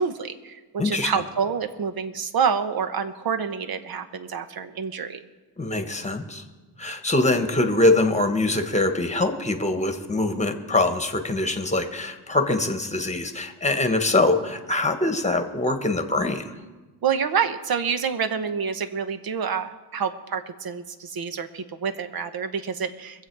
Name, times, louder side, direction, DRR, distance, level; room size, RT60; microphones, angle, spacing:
voice 1, 0.0-5.2 17.0-23.3, right 6 dB, 60° right, 10 dB, 1.1 m, -27 dB
voice 2, 0.8-1.1 5.6-6.4 6.8-16.6, left 2 dB, 15° left, 7 dB, 1.4 m, -23 dB
23.5 x 7.8 x 4.7 m, 1.3 s
cardioid pair, 85°, 40 cm